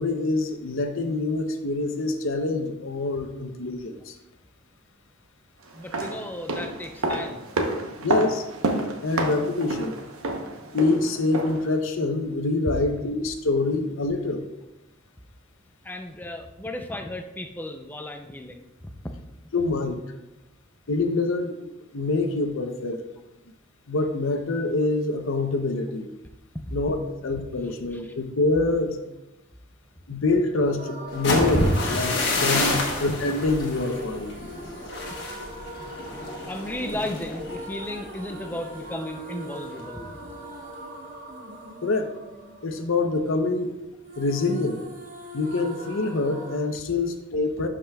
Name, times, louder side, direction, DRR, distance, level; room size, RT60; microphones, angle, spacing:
voice 1, 0.0-4.2 8.0-8.5 9.0-9.9 10.7-14.4 19.5-20.0 20.9-23.0 23.9-26.1 26.7-27.0 27.2-29.0 30.1-34.3 41.8-42.1 42.6-43.7 44.2-44.8 45.3-47.7, left 3 dB, 70° left, 6 dB, 0.7 m, -25 dB
voice 2, 5.7-7.5 15.8-18.7 19.0-19.2 26.7-26.8 27.6-28.1 32.7-32.8 36.5-40.1, left 1 dB, 10° left, 5 dB, 0.4 m, -35 dB
sound 1, 5.7-11.7 12.0-12.1, right 2 dB, 85° right, 0.9 m, -29 dB
sound 2, 30.8-43.7 44.0-46.6, right 1 dB, 40° right, 0.9 m, -41 dB
sound 3, 31.1-38.9 39.3-39.6 40.0-40.4, left 1 dB, 55° left, 1.3 m, -28 dB
11.5 x 5.0 x 2.3 m, 0.97 s
head